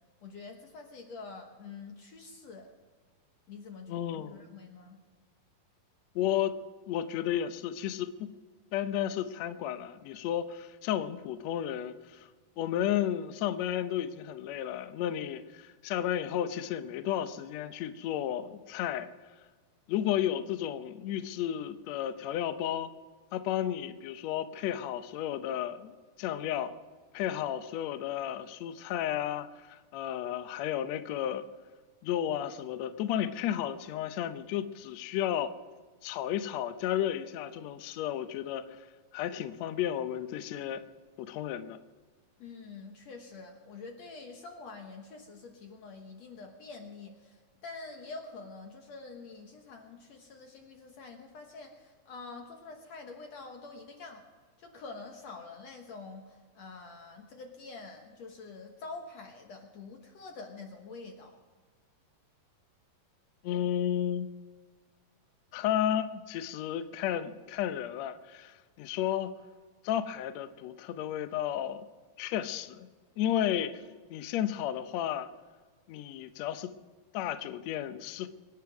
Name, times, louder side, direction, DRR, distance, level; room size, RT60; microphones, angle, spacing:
voice 1, 0.2-2.7 3.5-4.0 4.3-5.0 42.4-54.3 54.6-61.4, left 4 dB, 60° left, 3 dB, 2.0 m, -46 dB
voice 2, 3.9-4.4 6.1-8.3 8.7-12.3 12.6-19.1 19.9-22.9 23.3-26.7 27.1-31.4 32.0-35.5 36.0-38.9 39.1-40.8 41.2-41.8 63.4-64.3 65.5-69.3 69.8-71.8 72.2-72.9 73.2-73.8 74.1-75.3 75.9-76.7 77.1-78.3, left 11 dB, 80° left, 10 dB, 1.6 m, -33 dB
24.5 x 9.4 x 6.1 m, 1.4 s
omnidirectional pair, 4.1 m